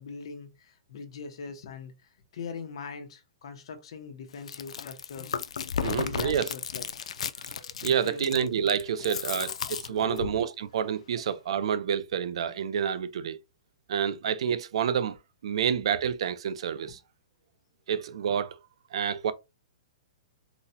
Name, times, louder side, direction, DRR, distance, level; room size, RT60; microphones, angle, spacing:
voice 1, 0.0-1.9 2.3-5.4 5.8-6.8 7.8-8.4 9.0-9.2 9.4-9.5 9.9-10.3 16.9-17.0, left 5 dB, 55° left, 0.8 m, -41 dB
Chewing mastication, 4.3-10.4, left 7 dB, 90° left, 0.3 m, -34 dB
voice 2, 5.8-6.5 7.8-13.4 13.9-15.2 15.4-17.0 17.9-18.6 18.9-19.3, right 8 dB, 60° right, 0.4 m, -28 dB
4.0 x 2.1 x 2.7 m
hypercardioid pair, 170°, 3 cm